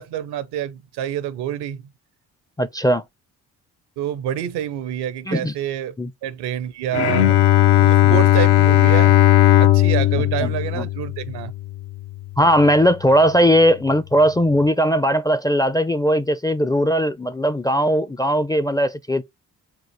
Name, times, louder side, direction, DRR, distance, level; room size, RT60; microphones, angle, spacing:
voice 1, 0.0-1.9 4.0-5.9 6.2-7.4 7.8-9.2 9.6-11.5, right 10 dB, 75° right, 0.7 m, -27 dB
voice 2, 2.6-3.0 5.3-5.5 6.0-6.1 8.0-8.2 10.4-10.9 12.4-19.2, equal, 10° left, 0.4 m, -18 dB
Bowed string instrument, 6.9-12.2, left 13 dB, 70° left, 0.6 m, -16 dB
3.8 x 2.5 x 4.5 m
hypercardioid pair, 45°, 41 cm